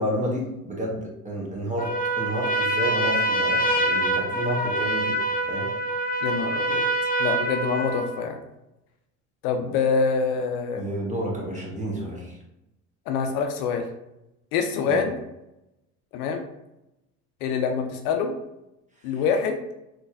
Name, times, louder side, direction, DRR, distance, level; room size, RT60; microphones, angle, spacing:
voice 1, 0.0-5.2 5.5-5.7 10.7-12.4 14.8-15.1, equal, 15° right, -3 dB, 1.3 m, -30 dB
Trumpet, 1.8-8.2, right 1 dB, 20° left, 0.6 m, -25 dB
voice 2, 6.2-6.9 7.2-8.4 9.4-10.8 13.1-13.8 14.5-15.2 16.1-16.5 17.4-18.4 19.0-19.6, left 5 dB, 65° left, 5 dB, 0.6 m, -25 dB
3.9 x 3.1 x 2.5 m, 0.89 s
hypercardioid pair, 70°, 49 cm